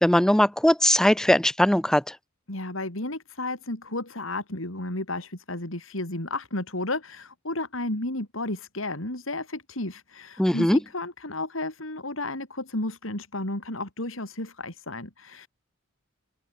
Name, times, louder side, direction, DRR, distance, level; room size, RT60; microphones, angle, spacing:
voice 1, 0.0-2.0 10.4-10.8, left 1 dB, 5° left, 0.4 m, -20 dB
voice 2, 2.5-15.5, left 2 dB, 80° left, 4.7 m, -33 dB
open air
head